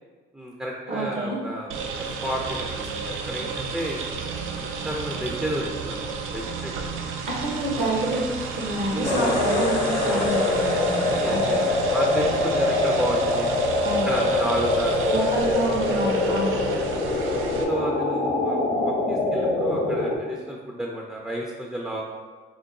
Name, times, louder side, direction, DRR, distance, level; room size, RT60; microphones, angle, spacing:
voice 1, 0.3-2.5 2.8-4.0 4.6-7.0 8.9-9.2 10.0-10.3 11.2-13.5 14.0-15.6 15.9-16.9 17.7-22.0, equal, 5° right, -2 dB, 0.4 m, -32 dB
voice 2, 0.9-1.4 7.3-8.2 8.5-11.7 13.8-14.1 15.0-16.6, right 1 dB, 65° right, -3 dB, 0.8 m, -27 dB
sound 1, 1.7-17.6, right 5 dB, 90° right, 0.4 m, -32 dB
sound 2, 9.0-20.1, left 2 dB, 85° left, 0.6 m, -24 dB
3.7 x 2.3 x 3.7 m, 1.5 s
cardioid pair, 90°, 20 cm